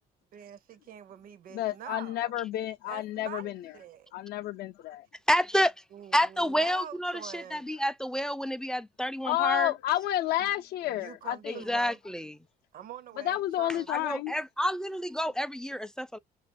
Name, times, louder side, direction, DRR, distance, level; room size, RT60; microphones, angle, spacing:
voice 1, 0.3-2.3 2.8-4.1 5.9-7.7 10.9-12.0 12.7-13.9, right 10 dB, 60° right, 0.7 m, -45 dB
voice 2, 1.5-3.6 4.1-5.1 9.2-11.6 13.2-14.3, left 13 dB, 70° left, 0.4 m, -30 dB
voice 3, 5.3-5.7 6.1-9.7 11.5-12.3 13.9-16.2, equal, 5° left, 0.3 m, -29 dB
5.8 x 2.5 x 2.5 m
cardioid pair, 110°, 17 cm